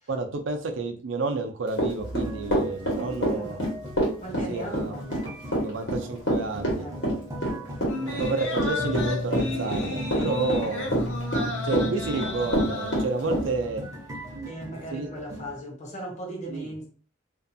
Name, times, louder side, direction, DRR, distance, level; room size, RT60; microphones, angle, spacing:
voice 1, 0.1-3.6 4.5-4.9 5.6-6.9 8.2-10.9 11.6-13.8 14.3-14.5 14.9-15.1 16.5-16.7, right 3 dB, 80° right, 0.5 m, -30 dB
Run / Walk footsteps, 1.7-13.5, equal, 70° left, 1.2 m, -26 dB
sound 1, 2.0-15.6, equal, 20° right, 0.6 m, -38 dB
voice 2, 2.9-3.6 4.2-5.2 6.7-7.6 7.9-8.4 10.6-10.8 14.4-16.9, right 1 dB, 35° left, 0.8 m, -39 dB
sound 2, 7.9-13.5 13.9-14.0, left 2 dB, 90° left, 0.7 m, -34 dB
2.5 x 2.3 x 2.6 m
head